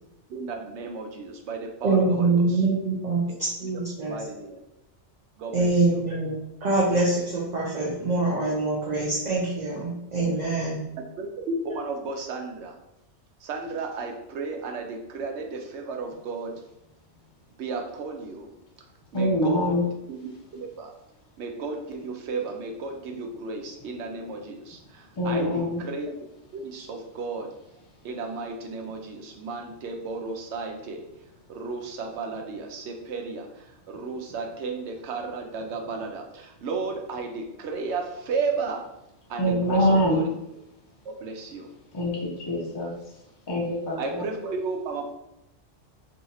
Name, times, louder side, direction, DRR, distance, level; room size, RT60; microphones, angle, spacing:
voice 1, 0.3-2.6 3.3-3.4 3.9-4.6 5.4-6.0 10.2-10.4 11.2-12.8 13.4-16.6 17.6-18.6 19.1-19.8 20.1-20.9 21.4-26.1 26.5-27.5 28.0-31.1 31.5-38.9 39.3-40.3 41.0-41.7 44.0-45.1, right 4 dB, 75° right, 3 dB, 0.9 m, -34 dB
voice 2, 1.8-3.2 3.6-4.2 5.5-6.3 6.6-10.8, right 3 dB, 45° right, -4 dB, 0.7 m, -24 dB
voice 3, 19.1-19.8 25.2-25.8 39.4-40.3 41.9-43.0 43.5-44.2, equal, 35° left, -2 dB, 0.4 m, -24 dB
2.7 x 2.4 x 4.0 m, 0.85 s
omnidirectional pair, 1.2 m